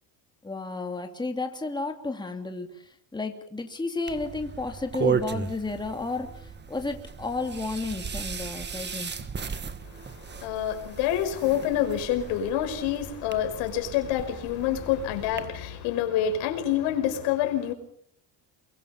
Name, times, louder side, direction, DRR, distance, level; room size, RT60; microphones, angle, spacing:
voice 1, 0.4-9.2, left 3 dB, 10° left, 2.7 m, -32 dB
sound 1, 4.1-15.4, right 5 dB, 25° right, 1.7 m, -35 dB
voice 2, 9.9-17.7, left 10 dB, 85° left, 5.4 m, -27 dB
28.5 x 24.0 x 5.7 m
cardioid pair, 135°, 44 cm